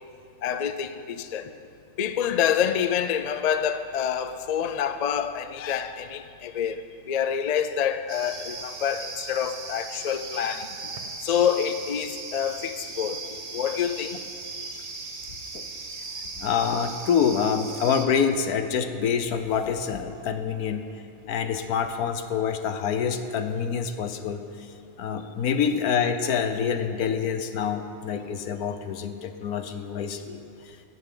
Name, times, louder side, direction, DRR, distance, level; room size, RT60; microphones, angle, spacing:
voice 1, 0.4-1.5 2.0-10.7 11.2-13.2 13.5-14.2, left 8 dB, 65° left, 0.4 m, -27 dB
sound 1, 8.1-18.1, right 3 dB, 35° right, 1.1 m, -38 dB
voice 2, 16.4-20.9 21.3-24.4 25.0-30.4 30.7-30.8, left 7 dB, 90° left, 1.3 m, -26 dB
17.0 x 13.5 x 3.9 m
omnidirectional pair, 1.5 m